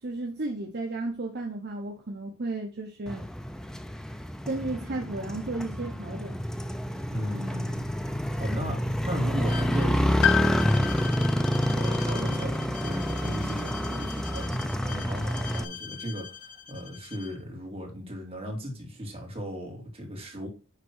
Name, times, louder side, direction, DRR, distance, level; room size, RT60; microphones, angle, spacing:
voice 1, 0.0-3.3 4.5-6.4, right 2 dB, 50° right, 1.0 m, -33 dB
Motorcycle, 3.1-15.6, equal, 5° left, 0.5 m, -28 dB
voice 2, 7.1-7.8 8.4-20.5, equal, 25° right, 2.9 m, -36 dB
Bowed string instrument, 9.4-17.4, left 7 dB, 40° left, 0.9 m, -43 dB
Piano, 10.2-14.4 15.6-15.7, left 9 dB, 60° left, 0.4 m, -32 dB
9.9 x 3.7 x 4.6 m
head